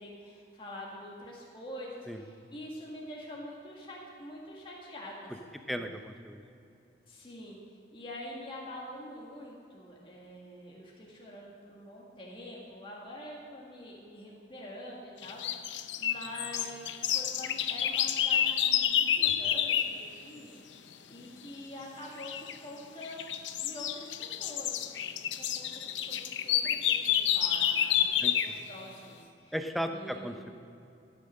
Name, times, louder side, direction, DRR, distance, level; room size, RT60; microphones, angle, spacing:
voice 1, 0.0-5.8 7.1-7.6 7.9-23.3 23.5-24.8 25.0-29.5 29.9-30.4, left 1 dB, 30° left, -4 dB, 2.0 m, -46 dB
voice 2, 5.7-6.4 19.2-19.3 28.2-28.6 29.5-30.5, equal, ahead, 6 dB, 0.6 m, -36 dB
sound 1, 15.2-20.0 22.2-22.6 23.0-28.6, left 10 dB, 80° left, 0.6 m, -29 dB
14.0 x 9.4 x 6.5 m, 2.7 s
head